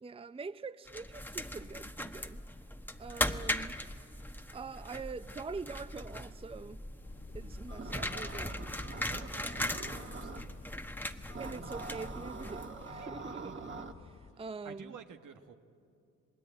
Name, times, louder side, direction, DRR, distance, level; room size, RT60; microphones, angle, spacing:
voice 1, 0.0-2.4 3.0-3.8 4.5-6.8 7.3-9.0 11.4-13.7 14.4-14.9, right 4 dB, 20° right, 0.6 m, -44 dB
sound 1, 0.9-12.9, left 1 dB, 5° left, 1.2 m, -39 dB
sound 2, 7.0-14.3, left 6 dB, 40° left, 0.9 m, -55 dB
sound 3, 7.7-10.4 11.3-13.9, right 3 dB, 40° right, 1.6 m, -45 dB
voice 2, 9.0-10.6 13.0-13.7 14.3-15.5, right 6 dB, 75° right, 1.5 m, -52 dB
27.5 x 19.5 x 9.1 m
supercardioid pair, 55°, 31 cm